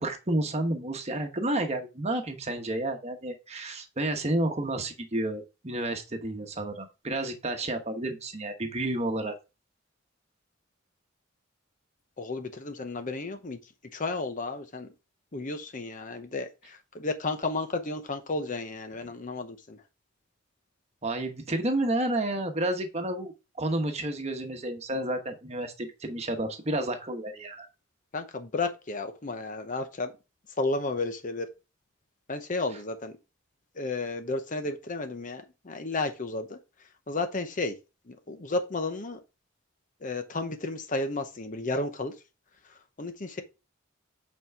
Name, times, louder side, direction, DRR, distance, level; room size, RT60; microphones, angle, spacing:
voice 1, 0.0-9.3 21.0-27.7, right 1 dB, 35° right, 1.1 m, -30 dB
voice 2, 12.2-13.6 13.9-14.9 15.3-19.8 28.1-30.1 30.6-31.5 32.3-33.1 33.8-36.6 37.1-37.8 38.1-39.2 40.0-42.1 43.0-43.4, left 3 dB, 40° left, 0.8 m, -32 dB
8.4 x 4.6 x 3.5 m
head